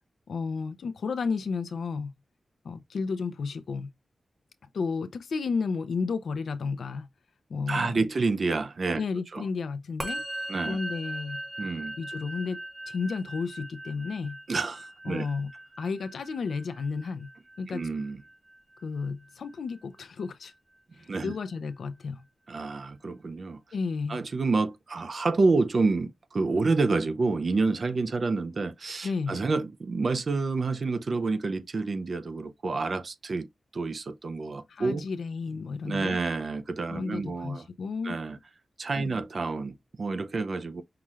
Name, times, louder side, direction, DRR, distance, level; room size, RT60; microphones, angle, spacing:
voice 1, 0.3-2.1 2.6-3.9 4.7-7.1 7.5-8.0 9.0-10.2 10.7-11.4 12.0-12.6 12.9-14.4 15.0-15.5 15.8-17.3 17.6-17.8 18.8-20.5 21.0-22.2 23.7-24.2 29.0-29.4 34.7-36.2 36.9-38.2 39.0-39.1, left 4 dB, 85° left, 0.5 m, -32 dB
voice 2, 7.7-9.0 9.3-9.4 10.5-10.8 11.6-12.0 14.5-15.3 17.7-18.2 21.1-21.3 22.5-23.6 24.1-33.5 33.7-35.1 35.8-37.7 38.0-38.4 38.8-40.8, right 3 dB, 45° right, 0.5 m, -28 dB
Musical instrument, 10.0-19.5, right 1 dB, 25° right, 1.2 m, -40 dB
5.7 x 2.4 x 3.1 m
wide cardioid pair, 180°, 0 cm